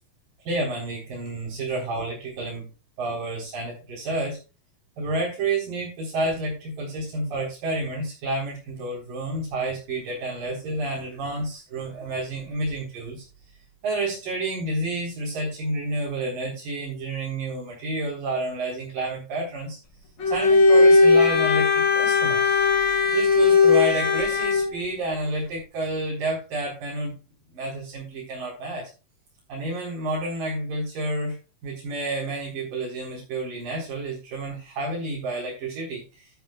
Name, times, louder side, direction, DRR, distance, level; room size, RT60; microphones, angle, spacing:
voice 1, 0.5-2.7 3.0-4.4 5.0-13.2 13.8-19.8 20.3-22.5 23.1-27.1 27.5-28.9 29.5-31.4 31.6-36.3, right 2 dB, 75° right, -4 dB, 6.0 m, -30 dB
Bowed string instrument, 20.2-24.7, left 4 dB, 35° left, 2.4 m, -18 dB
12.5 x 12.5 x 2.3 m, 0.31 s
omnidirectional pair, 3.9 m